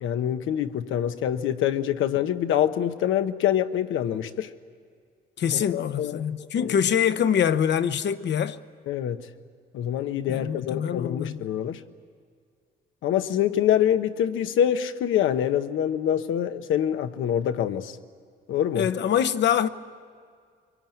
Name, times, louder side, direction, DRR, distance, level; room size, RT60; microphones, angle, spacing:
voice 1, 0.0-4.5 5.5-6.2 6.5-6.8 8.9-9.3 9.7-11.8 13.0-18.0 18.5-18.9, left 10 dB, 85° left, 1.1 m, -25 dB
voice 2, 5.4-8.6 10.3-11.4 18.7-19.7, left 8 dB, 60° left, 1.0 m, -24 dB
24.5 x 23.5 x 9.2 m
cardioid pair, 90°, 20 cm